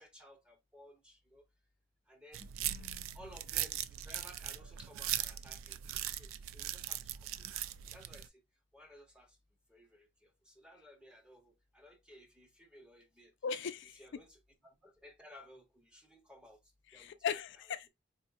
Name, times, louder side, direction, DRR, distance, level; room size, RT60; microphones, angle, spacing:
voice 1, 0.0-1.4 2.1-2.5 3.1-7.0 7.9-8.3 8.7-9.4 9.7-13.3 13.9-16.6 16.9-17.2, equal, 5° right, 0.7 m, -57 dB
sound 1, 2.3-8.3, right 12 dB, 80° right, 0.3 m, -40 dB
voice 2, 2.6-3.2 13.4-14.0 16.9-17.9, left 7 dB, 60° left, 0.4 m, -39 dB
4.2 x 2.7 x 2.3 m
head